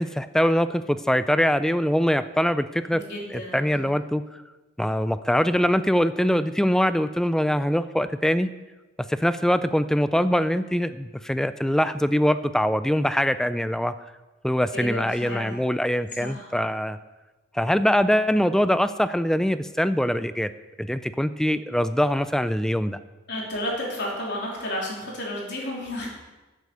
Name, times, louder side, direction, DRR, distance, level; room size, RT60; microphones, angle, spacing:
voice 1, 0.0-3.0 3.3-4.2 4.8-8.5 9.1-13.9 14.4-17.0 17.5-20.5 20.8-23.0, equal, 5° left, 13 dB, 0.3 m, -23 dB
voice 2, 2.9-3.9 14.7-15.6 16.2-16.5 23.3-26.1, left 1 dB, 60° left, -3 dB, 3.6 m, -32 dB
9.3 x 8.3 x 6.7 m, 1.2 s
head